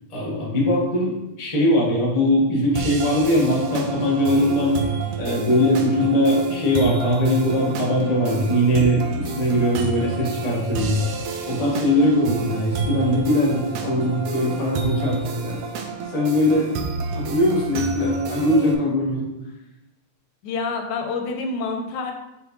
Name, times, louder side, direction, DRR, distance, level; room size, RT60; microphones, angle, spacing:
voice 1, 0.1-4.8 5.2-11.0 11.5-15.6 16.1-16.7 17.1-19.3, left 1 dB, 25° left, -5 dB, 0.8 m, -21 dB
sound 1, 2.8-18.8, right 5 dB, 85° right, 2.0 m, -29 dB
voice 2, 20.4-22.1, left 4 dB, 90° left, 4 dB, 2.2 m, -27 dB
5.9 x 5.1 x 3.1 m, 0.92 s
omnidirectional pair, 3.3 m